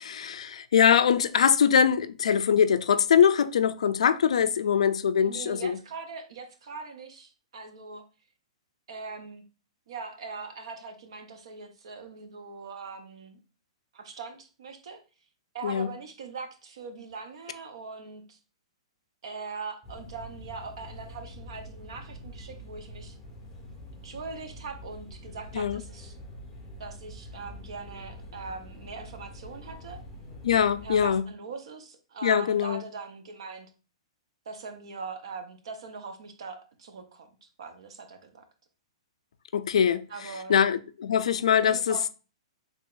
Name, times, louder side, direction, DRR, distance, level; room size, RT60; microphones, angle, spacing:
voice 1, 0.0-5.8 15.6-15.9 25.5-25.8 30.4-31.2 32.2-32.8 39.5-42.0, left 8 dB, 85° left, 0.3 m, -23 dB
voice 2, 5.3-8.0 8.9-9.4 9.9-13.4 13.9-15.0 15.5-18.4 19.2-23.2 24.0-26.2 26.8-30.0 30.8-33.7 34.5-38.4 40.1-40.7 41.5-42.1, right 4 dB, 60° right, 0.7 m, -41 dB
sound 1, 19.8-31.2, left 1 dB, ahead, 1.0 m, -45 dB
3.8 x 3.3 x 2.4 m
hypercardioid pair, 180°, 3 cm